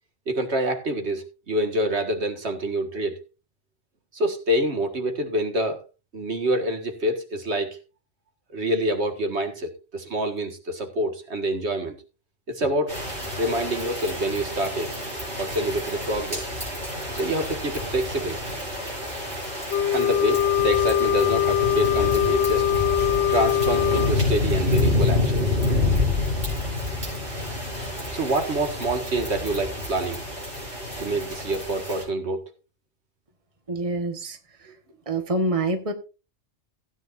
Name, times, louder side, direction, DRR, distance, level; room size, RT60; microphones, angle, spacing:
voice 1, 0.3-3.2 4.1-5.8 6.1-7.8 8.5-12.0 12.5-13.0 13.4-14.9 15.3-16.5 17.1-18.4 19.9-22.7 23.3-25.6 28.1-30.2 31.0-32.5 34.7-34.8, right 1 dB, 70° right, 2.0 m, -27 dB
sound 1, 12.9-32.0, left 2 dB, 50° right, 6.9 m, -28 dB
Wind instrument woodwind instrument, 19.7-24.2, left 10 dB, 65° left, 1.8 m, -22 dB
voice 2, 33.7-34.7 35.1-35.9, right 2 dB, 30° right, 1.4 m, -27 dB
16.0 x 9.5 x 2.6 m
omnidirectional pair, 1.2 m